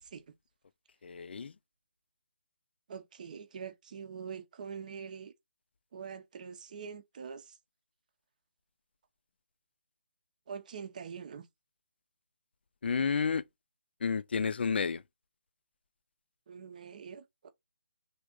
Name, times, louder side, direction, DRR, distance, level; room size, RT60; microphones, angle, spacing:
voice 1, 1.0-1.5 12.8-13.4 14.0-15.0, left 5 dB, 60° left, 0.4 m, -30 dB
voice 2, 2.9-5.3 5.9-7.6 10.5-11.5 16.5-17.5, right 6 dB, 40° right, 0.6 m, -44 dB
3.3 x 2.6 x 3.5 m
figure-of-eight pair, 155°, 6 cm